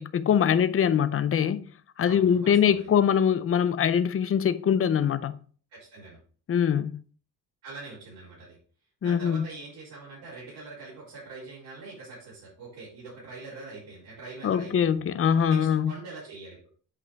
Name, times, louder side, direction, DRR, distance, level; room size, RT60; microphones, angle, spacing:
voice 1, 0.0-1.7 2.0-5.4 6.5-7.0 9.0-9.5 14.4-15.9, left 8 dB, 35° left, 0.5 m, -23 dB
voice 2, 2.0-2.9 5.7-6.2 7.6-8.6 9.0-15.0 15.5-16.7, right 3 dB, 65° right, 4.2 m, -44 dB
8.5 x 5.4 x 3.4 m
cardioid pair, 145°, 41 cm